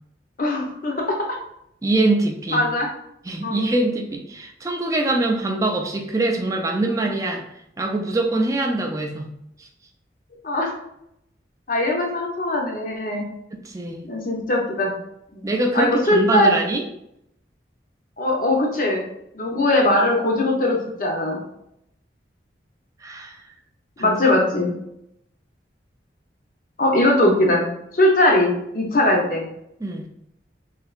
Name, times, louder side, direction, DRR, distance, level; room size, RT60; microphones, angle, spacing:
voice 1, 0.4-1.4 2.5-2.9 3.4-3.6 10.4-10.7 11.7-13.3 14.0-15.0 15.3-15.4 15.7-16.6 18.2-19.0 19.3-21.4 24.0-24.8 26.8-29.5, left 1 dB, 45° left, 0 dB, 0.7 m, -20 dB
voice 2, 1.8-2.7 3.2-7.4 7.8-9.3 9.6-9.7 13.6-14.1 15.4-16.8 23.0-23.4 24.0-24.2 24.6-24.7 29.8-30.1, right 2 dB, 20° right, 2 dB, 0.3 m, -23 dB
3.2 x 2.8 x 2.4 m, 0.78 s
head